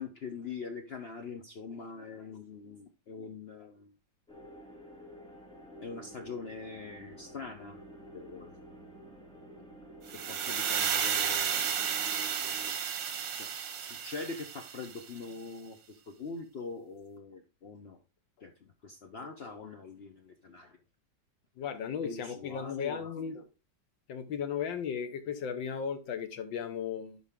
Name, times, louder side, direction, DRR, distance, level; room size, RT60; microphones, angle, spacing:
voice 1, 0.0-3.9 5.8-7.8 8.1-8.5 9.6-9.7 10.3-11.6 13.4-13.5 13.8-18.0 18.4-20.8 22.0-23.1, left 4 dB, 70° left, 5 dB, 0.5 m, -43 dB
sound 1, 4.3-12.7, equal, 5° left, 1.6 m, -50 dB
sound 2, 10.1-15.1, right 8 dB, 80° right, 1.8 m, -32 dB
voice 2, 21.6-23.4 24.1-27.2, left 7 dB, 90° left, 9 dB, 1.8 m, -36 dB
11.5 x 4.1 x 3.6 m, 0.31 s
omnidirectional pair, 2.0 m